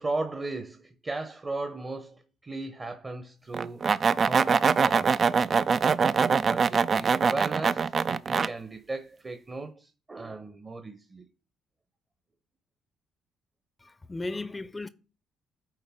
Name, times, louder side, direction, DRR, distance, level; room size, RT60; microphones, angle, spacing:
voice 1, 0.0-3.8 4.2-5.3 6.4-11.3, right 3 dB, 30° right, 1.0 m, -36 dB
sound 1, 3.5-8.5, right 5 dB, 45° right, 0.4 m, -23 dB
voice 2, 13.8-14.9, left 2 dB, 20° left, 0.6 m, -35 dB
9.1 x 4.1 x 3.6 m
hypercardioid pair, 45°, 0 cm